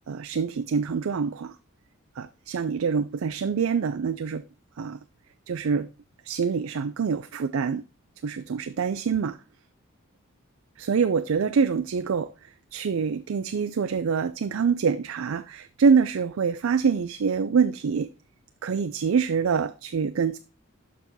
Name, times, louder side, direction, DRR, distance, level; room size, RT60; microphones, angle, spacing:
voice 1, 0.1-1.5 2.2-4.4 4.8-5.0 5.5-5.9 6.2-7.8 8.2-9.4 10.8-12.3 12.7-18.1 18.6-20.4, right 6 dB, 85° right, 0.4 m, -25 dB
6.8 x 6.1 x 4.0 m
head